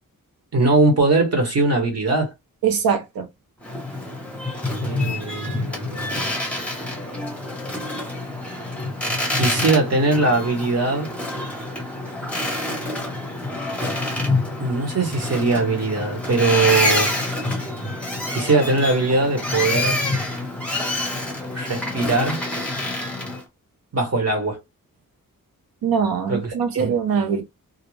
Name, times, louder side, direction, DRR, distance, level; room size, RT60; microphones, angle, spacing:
voice 1, 0.5-2.3 4.8-6.3 9.3-11.1 14.6-17.2 18.3-20.0 21.5-22.4 23.9-24.6 26.3-26.9, right 3 dB, 45° right, 1.0 m, -21 dB
voice 2, 2.6-3.3 25.8-27.4, right 6 dB, 80° right, 0.7 m, -22 dB
Boat Water vehicle, 3.6-23.4, left 2 dB, 5° left, 0.7 m, -27 dB
2.5 x 2.0 x 3.1 m
wide cardioid pair, 150°, 35 cm